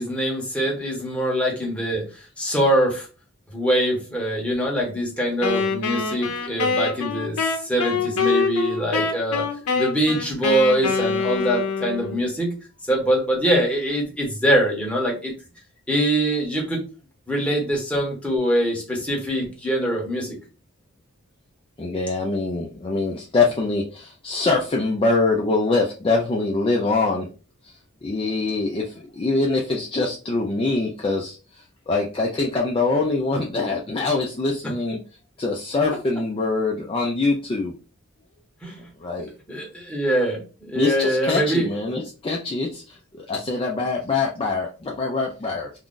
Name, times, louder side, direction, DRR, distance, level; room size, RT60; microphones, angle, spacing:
voice 1, 0.0-3.1 3.5-9.5 9.7-12.5 12.9-15.3 15.9-16.8 17.3-20.4 38.6-38.8 39.5-41.7, right 1 dB, 5° left, -2 dB, 0.9 m, -23 dB
Wind instrument woodwind instrument, 5.4-12.2, left 4 dB, 85° left, 0.6 m, -25 dB
voice 2, 21.8-27.3 27.6-27.7 28.0-35.0 35.4-37.7 39.0-39.3 40.7-45.7, left 3 dB, 25° left, -1 dB, 0.4 m, -24 dB
2.5 x 2.3 x 3.6 m, 0.34 s
head